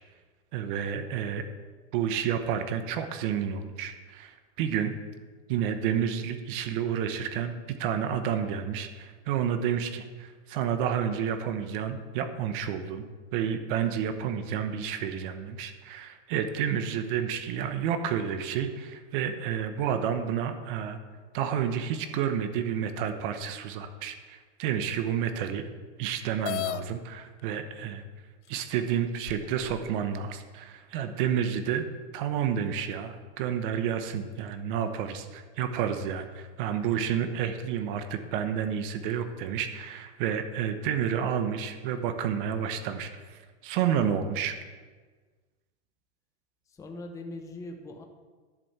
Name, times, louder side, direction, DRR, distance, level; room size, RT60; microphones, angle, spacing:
voice 1, 0.5-1.4 1.9-4.9 5.5-13.0 13.3-21.0 21.3-25.6 26.0-28.0 28.5-31.8 32.1-44.5, right 8 dB, 45° right, 9 dB, 1.1 m, -30 dB
sound 1, 26.4-26.8 27.8-27.9 28.5-28.6 29.3-30.0, left 14 dB, 75° left, 0.5 m, -34 dB
voice 2, 46.7-48.0, left 2 dB, 10° left, 3 dB, 0.8 m, -41 dB
11.0 x 5.1 x 8.0 m, 1.4 s
supercardioid pair, 145°, 35 cm